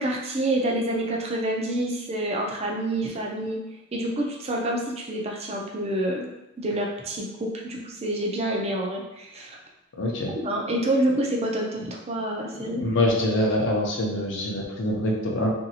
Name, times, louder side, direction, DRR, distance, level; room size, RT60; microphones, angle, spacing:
voice 1, 0.0-3.6 3.9-6.3 6.6-9.6 10.4-12.8, right 1 dB, 30° right, -1 dB, 0.4 m, -27 dB
voice 2, 10.0-10.4 12.5-15.5, left 1 dB, 55° left, -1 dB, 0.6 m, -25 dB
3.0 x 2.6 x 2.7 m, 0.95 s
head